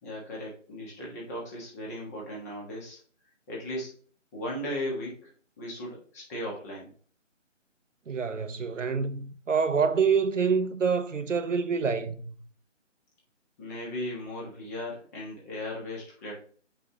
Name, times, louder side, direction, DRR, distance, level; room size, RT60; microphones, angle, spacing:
voice 1, 0.0-3.0 3.5-3.9 4.3-5.3 5.6-6.9 13.6-16.3, left 1 dB, 15° left, 1.4 m, -37 dB
voice 2, 8.1-12.4, right 5 dB, 75° right, 0.9 m, -27 dB
7.6 x 5.5 x 2.9 m
figure-of-eight pair, 160°, 38 cm